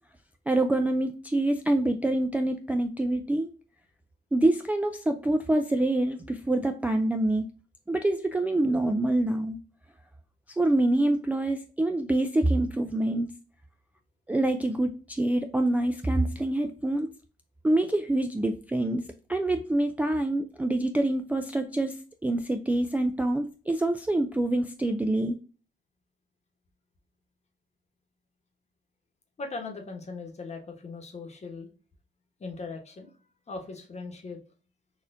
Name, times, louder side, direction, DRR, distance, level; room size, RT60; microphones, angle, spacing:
voice 1, 0.5-3.5 4.3-7.4 7.9-9.6 10.5-13.3 14.3-17.1 17.6-19.0 19.3-22.0 22.2-25.4, right 1 dB, 10° right, 4 dB, 0.3 m, -26 dB
voice 2, 29.4-31.7 32.4-33.1 33.5-34.4, left 3 dB, 35° left, 3 dB, 1.1 m, -39 dB
4.1 x 2.5 x 2.5 m, 0.37 s
cardioid pair, 90°, 20 cm